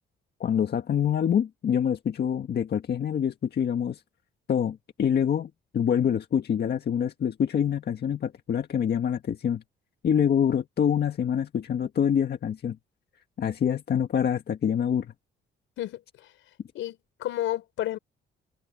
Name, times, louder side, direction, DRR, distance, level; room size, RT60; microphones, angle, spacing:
voice 1, 0.4-4.0 4.5-9.6 10.0-12.8 13.4-15.1, left 8 dB, 55° left, 1.7 m, -26 dB
voice 2, 15.8-16.3 16.7-18.0, left 13 dB, 85° left, 4.8 m, -32 dB
cardioid pair, 90°, 20 cm